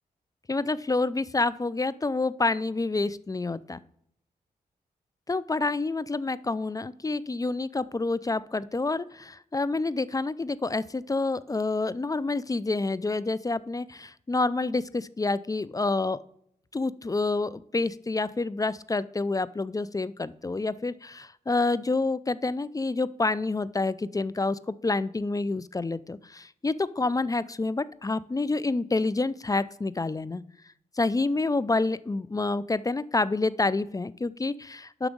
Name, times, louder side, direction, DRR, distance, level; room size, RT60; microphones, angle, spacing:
voice 1, 0.5-3.8 5.3-16.2 16.7-30.4 31.0-35.1, left 3 dB, 20° left, 18 dB, 0.4 m, -28 dB
6.9 x 6.0 x 5.3 m, 0.71 s
supercardioid pair, 40°, 17 cm